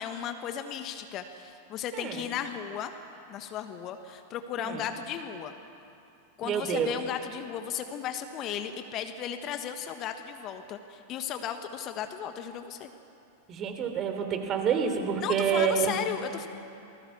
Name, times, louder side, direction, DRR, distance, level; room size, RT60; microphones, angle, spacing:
voice 1, 0.0-2.9 3.3-5.5 6.4-12.9 15.2-16.5, left 9 dB, 35° left, 8 dB, 1.4 m, -35 dB
voice 2, 6.4-6.9 13.5-16.0, right 7 dB, 30° right, 6 dB, 3.3 m, -28 dB
27.5 x 20.0 x 7.1 m, 2.7 s
figure-of-eight pair, 90°, 0 cm